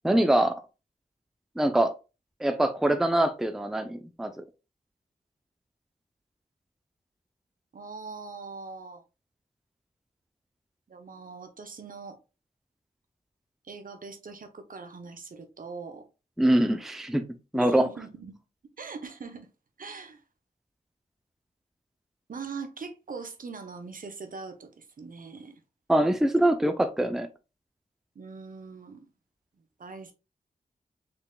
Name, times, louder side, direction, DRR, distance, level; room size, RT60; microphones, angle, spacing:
voice 1, 0.0-0.6 1.6-1.9 2.4-4.4 16.4-17.3 17.5-17.9 25.9-27.3, right 1 dB, ahead, 0.5 m, -24 dB
voice 2, 7.7-9.0 10.9-12.2 13.6-16.0 17.5-18.4 18.8-19.5 19.8-20.2 22.3-25.5 28.1-29.1 29.8-30.1, right 4 dB, 55° right, 0.8 m, -41 dB
4.0 x 3.4 x 2.3 m
cardioid pair, 45°, 16 cm